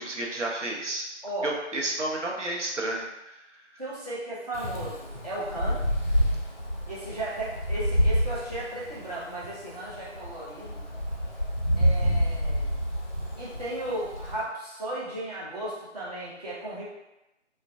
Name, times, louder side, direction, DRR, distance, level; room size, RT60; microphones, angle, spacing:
voice 1, 0.0-1.0 1.4-3.3, right 2 dB, 80° right, -2 dB, 0.7 m, -31 dB
voice 2, 1.2-1.5 3.8-5.8 6.9-10.8 11.7-12.8 13.4-16.8, right 1 dB, 35° right, -9 dB, 0.7 m, -35 dB
Wind, 4.5-14.4, equal, 40° left, 0.5 m, -28 dB
2.4 x 2.1 x 2.4 m, 0.96 s
figure-of-eight pair, 160°, 36 cm